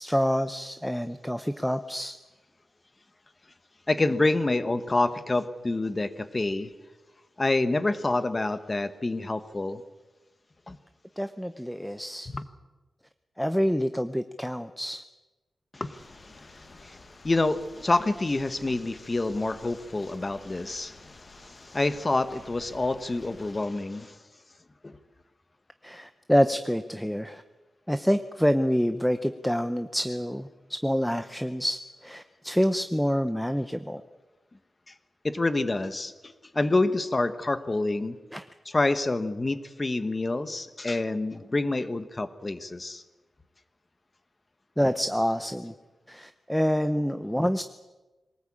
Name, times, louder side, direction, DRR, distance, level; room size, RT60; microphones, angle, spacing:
voice 1, 0.0-2.2 11.2-12.3 13.4-15.0 25.8-27.4 27.9-34.0 38.3-38.5 44.8-45.7 46.1-47.6, equal, ahead, 10 dB, 0.7 m, -27 dB
voice 2, 3.9-6.7 7.4-9.8 10.7-10.8 12.3-12.4 15.7-24.2 24.8-25.0 35.2-38.2 38.7-43.0, left 2 dB, 25° left, 12 dB, 1.2 m, -28 dB
Stream, 15.9-23.6, left 3 dB, 65° left, 4.4 m, -54 dB
22.5 x 19.0 x 8.7 m, 1.1 s
wide cardioid pair, 170°, 0 cm